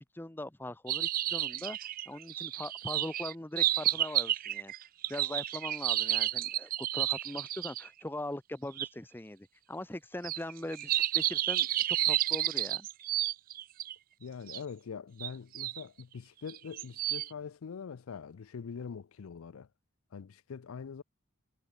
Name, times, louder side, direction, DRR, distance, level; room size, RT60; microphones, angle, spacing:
voice 1, 0.1-1.8 2.1-4.7 5.1-12.9, left 1 dB, 10° left, 0.8 m, -41 dB
sound 1, 0.9-7.9 8.8-8.9 10.2-13.9 14.5-14.6 15.2-15.8 16.5-17.3, right 13 dB, 40° right, 0.4 m, -31 dB
voice 2, 14.2-19.7 20.1-21.0, left 6 dB, 75° left, 0.5 m, -43 dB
head